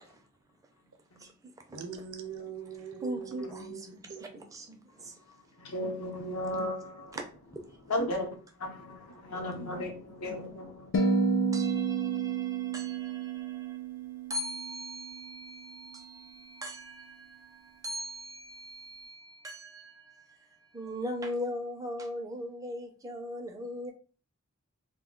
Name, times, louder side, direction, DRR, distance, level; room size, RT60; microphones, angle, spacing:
voice 1, 1.2-1.8 3.0-5.2 7.1-7.2 7.5-7.6 11.5-23.9, equal, 15° right, 0.4 m, -40 dB
voice 2, 1.7-4.4, right 6 dB, 70° right, 0.6 m, -42 dB
voice 3, 5.6-7.2 7.9-10.9, left 1 dB, 80° left, 0.8 m, -35 dB
sound 1, 10.9-15.3, right 4 dB, 55° left, 0.4 m, -30 dB
2.2 x 2.1 x 3.7 m
head